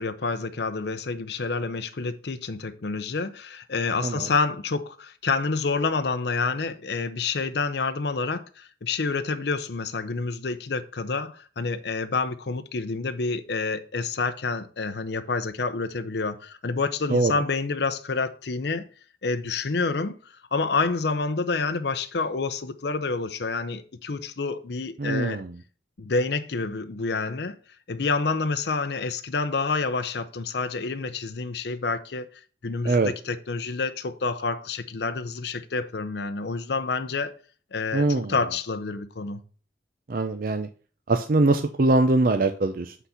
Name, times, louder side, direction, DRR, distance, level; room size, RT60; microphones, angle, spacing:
voice 1, 0.0-18.9 19.2-25.4 26.0-27.6 27.9-37.3 37.7-38.0 38.3-39.4, left 4 dB, 65° left, 0.6 m, -28 dB
voice 2, 25.0-25.5 32.8-33.1 37.9-38.3 40.1-40.7 41.1-43.0, right 2 dB, 50° right, 0.5 m, -22 dB
8.2 x 4.0 x 5.6 m
head